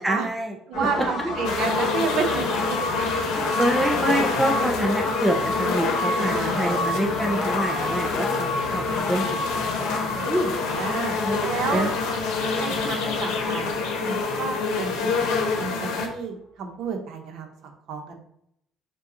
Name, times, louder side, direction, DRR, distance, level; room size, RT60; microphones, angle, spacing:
voice 1, 0.0-1.3 3.4-10.5 11.2-11.9 12.4-12.9, right 1 dB, 5° right, 1 dB, 0.3 m, -27 dB
sound 1, 0.7-14.3, left 2 dB, 65° left, 1.3 m, -30 dB
voice 2, 0.7-2.8 6.2-7.0 10.1-10.4 10.6-11.2 11.5-11.9 12.5-18.2, right 5 dB, 55° right, 4 dB, 0.8 m, -31 dB
sound 2, 1.4-16.1, left 4 dB, 90° left, 0.8 m, -27 dB
6.5 x 2.3 x 2.7 m, 0.73 s
cardioid pair, 175°, 0 cm